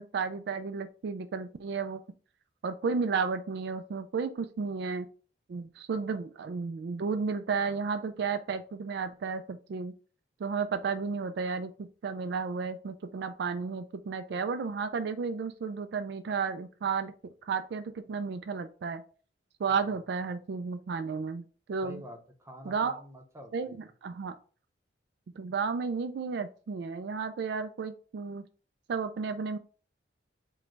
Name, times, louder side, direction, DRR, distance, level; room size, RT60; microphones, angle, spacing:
voice 1, 0.0-2.0 2.6-5.1 5.5-9.9 10.4-17.1 17.4-19.0 19.6-21.4 21.7-22.0 22.7-23.0 23.5-24.3 25.4-28.4 28.9-29.6, right 5 dB, 65° right, 9 dB, 0.3 m, -33 dB
voice 2, 21.8-23.9, right 1 dB, 15° right, 3 dB, 0.8 m, -48 dB
5.0 x 2.2 x 4.5 m, 0.39 s
head